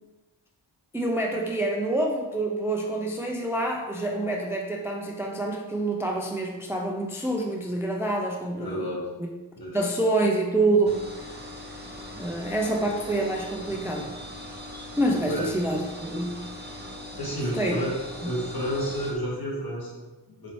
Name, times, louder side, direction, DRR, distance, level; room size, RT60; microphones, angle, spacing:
voice 1, 0.9-8.9 9.7-11.0 12.2-14.1 15.0-16.4 17.5-17.7, right 2 dB, 5° right, 1 dB, 0.4 m, -27 dB
voice 2, 8.6-9.1 9.5-9.7 15.3-15.5 17.2-18.0 18.2-20.5, equal, 55° left, -4 dB, 1.4 m, -31 dB
Sound of fridge, 10.9-19.2, left 1 dB, 25° right, 0.8 m, -40 dB
4.1 x 2.7 x 3.0 m, 1.2 s
cardioid pair, 50°, 43 cm